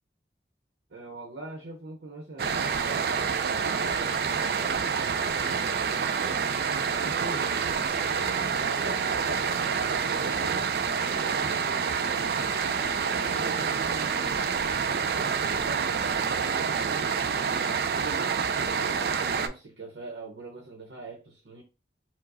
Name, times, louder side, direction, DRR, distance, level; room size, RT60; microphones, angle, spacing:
voice 1, 0.9-7.5 8.0-10.7 11.0-12.0 12.6-17.1 17.7-21.6, right 2 dB, 90° right, 0.7 m, -43 dB
sound 1, 2.4-19.5, right 6 dB, 60° right, 0.3 m, -27 dB
4.6 x 2.0 x 2.6 m
head